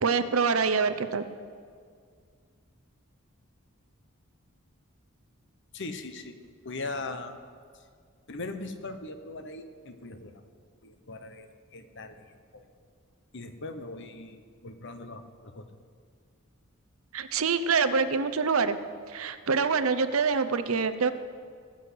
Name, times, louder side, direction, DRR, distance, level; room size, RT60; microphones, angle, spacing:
voice 1, 0.0-1.2 17.1-18.8 19.1-21.1, right 5 dB, 85° right, 11 dB, 0.7 m, -25 dB
voice 2, 5.7-6.4 6.6-7.4 8.3-10.3 10.8-12.7 13.3-15.6, left 2 dB, 60° left, 8 dB, 1.1 m, -40 dB
19.0 x 6.4 x 7.9 m, 2.1 s
head